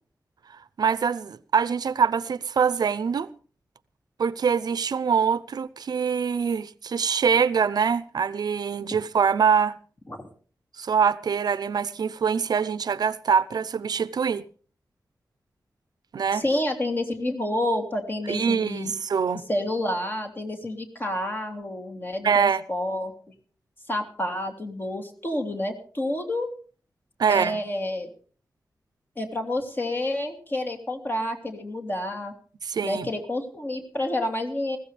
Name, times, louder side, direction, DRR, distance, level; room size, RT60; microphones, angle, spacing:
voice 1, 0.8-3.3 4.2-9.7 10.8-14.4 16.1-16.4 18.3-19.4 22.2-22.6 27.2-27.6 32.6-33.1, right 6 dB, 80° right, 0.7 m, -24 dB
voice 2, 16.3-18.9 19.5-23.1 23.9-26.5 27.3-28.1 29.2-32.3 32.8-34.8, left 1 dB, 30° left, 2.8 m, -29 dB
20.5 x 16.0 x 3.4 m
wide cardioid pair, 155°, 7 cm